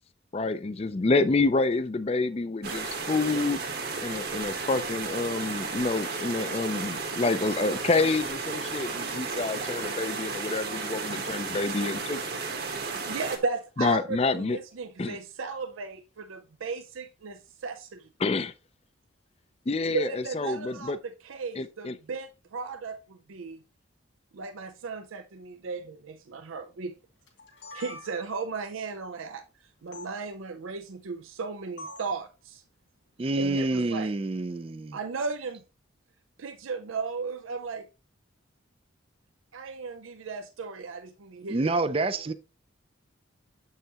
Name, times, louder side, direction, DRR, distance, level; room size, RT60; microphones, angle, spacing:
voice 1, 0.3-3.6 4.0-12.2 13.8-14.6 15.0-15.2 18.2-18.5 19.7-21.0 21.5-22.0, left 3 dB, 30° left, 0.4 m, -28 dB
sound 1, 2.6-13.4, right 4 dB, 50° right, 1.2 m, -33 dB
voice 2, 13.1-18.1 19.9-23.6 24.3-26.9 27.7-29.4 29.8-32.6 33.4-34.1 34.9-35.6 36.4-37.9 39.5-41.8, right 4 dB, 90° right, 0.5 m, -35 dB
sound 2, 27.3-28.5 29.9-30.1 31.8-32.2, left 2 dB, 70° left, 2.3 m, -44 dB
voice 3, 33.2-35.0 41.5-42.3, right 2 dB, 30° right, 0.4 m, -27 dB
7.6 x 5.6 x 2.9 m
head